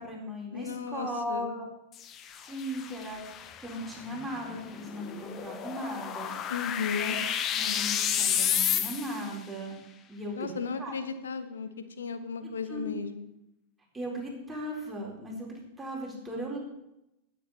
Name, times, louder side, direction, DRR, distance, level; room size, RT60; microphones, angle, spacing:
voice 1, 0.0-1.6 2.3-6.3 7.0-7.1 7.6-9.8 10.1-10.9 12.4-12.9 13.9-16.6, equal, 10° right, -3 dB, 4.2 m, -37 dB
voice 2, 0.5-1.6 6.5-7.2 10.4-11.7 12.0-13.3, left 5 dB, 70° left, 9 dB, 1.2 m, -35 dB
sound 1, 1.9-9.4, left 9 dB, 30° left, 0.9 m, -32 dB
16.0 x 8.5 x 4.3 m, 0.86 s
figure-of-eight pair, 90°, 0 cm